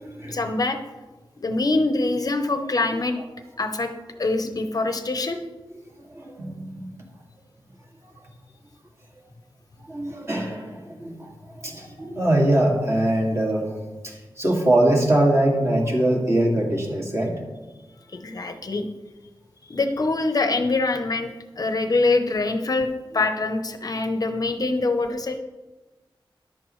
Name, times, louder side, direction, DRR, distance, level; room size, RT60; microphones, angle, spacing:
voice 1, 0.3-0.8 1.4-3.1 3.6-3.9 4.2-5.4 18.1-18.9 19.7-25.4, left 3 dB, 45° left, 6 dB, 0.8 m, -24 dB
voice 2, 6.1-7.0 9.9-11.3 11.6-13.7 14.0-17.4, right 1 dB, 30° right, -1 dB, 2.2 m, -22 dB
14.5 x 11.0 x 3.1 m, 1.2 s
wide cardioid pair, 135°, 9 cm